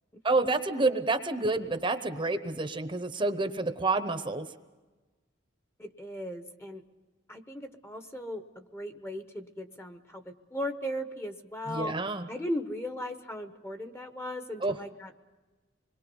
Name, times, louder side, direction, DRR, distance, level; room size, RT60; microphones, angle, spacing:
voice 1, 0.2-4.5 11.7-12.3 14.6-14.8, right 3 dB, 25° right, 9 dB, 0.9 m, -28 dB
voice 2, 5.8-6.8 7.3-11.9 12.3-15.1, equal, 15° left, 8 dB, 1.0 m, -37 dB
26.0 x 21.5 x 5.4 m, 1.2 s
head